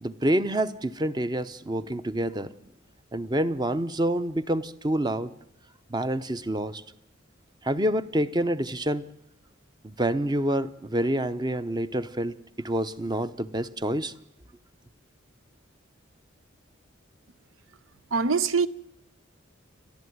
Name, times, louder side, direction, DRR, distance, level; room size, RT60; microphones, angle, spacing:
voice 1, 0.0-2.5 3.1-5.3 5.9-6.8 7.6-9.0 9.8-14.1, right 1 dB, 20° right, 0.7 m, -27 dB
voice 2, 18.1-18.7, right 5 dB, 80° right, 0.8 m, -23 dB
29.0 x 12.0 x 9.4 m
head